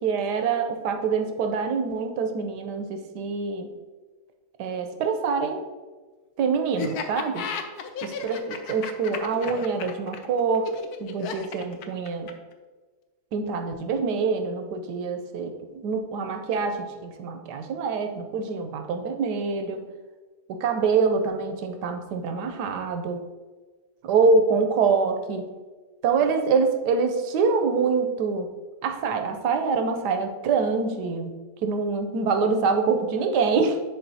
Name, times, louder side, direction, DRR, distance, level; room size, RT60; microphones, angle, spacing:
voice 1, 0.0-3.7 4.6-5.6 6.4-7.5 8.0-10.7 11.0-12.3 13.3-19.8 20.5-23.2 24.0-25.5 26.0-28.5 28.8-31.3 31.6-33.8, right 5 dB, 90° right, 6 dB, 1.3 m, -25 dB
Laughter, 6.8-12.5, left 5 dB, 70° left, 1.1 m, -34 dB
10.0 x 3.9 x 2.7 m, 1.3 s
omnidirectional pair, 1.8 m